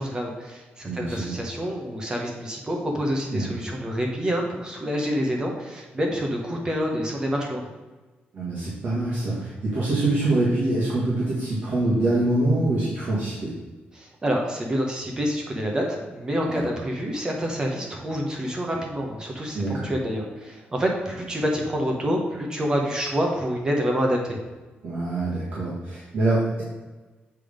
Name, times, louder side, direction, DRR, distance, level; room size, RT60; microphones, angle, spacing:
voice 1, 0.0-7.7 13.9-24.4, equal, 20° right, 0 dB, 0.9 m, -27 dB
voice 2, 0.8-1.3 3.3-3.5 8.3-13.6 16.4-16.6 19.5-19.9 24.8-26.6, right 2 dB, 45° right, -7 dB, 1.7 m, -25 dB
7.6 x 3.6 x 5.1 m, 1.2 s
wide cardioid pair, 165°, 4 cm